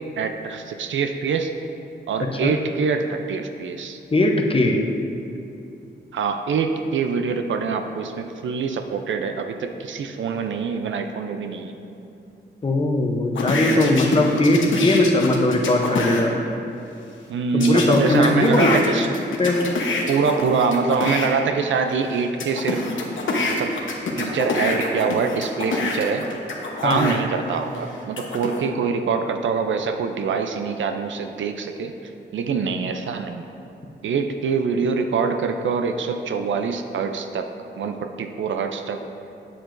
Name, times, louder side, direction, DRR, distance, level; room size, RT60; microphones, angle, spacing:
voice 1, 0.2-1.5 2.1-4.0 6.1-11.8 17.3-19.1 20.1-22.8 23.5-23.8 24.2-26.3 26.8-31.9 32.3-33.5 34.0-37.5 37.8-39.0, right 5 dB, 80° right, 6 dB, 0.4 m, -24 dB
voice 2, 4.1-4.9 12.6-16.3 17.5-19.0 19.4-19.7 26.8-27.1, left 1 dB, 30° left, 2 dB, 0.6 m, -19 dB
sound 1, 13.4-16.2 17.6-21.3 21.9-27.2 27.7-28.6, left 3 dB, 85° left, 1.0 m, -26 dB
8.6 x 7.5 x 2.6 m, 2.7 s
wide cardioid pair, 125°, 20 cm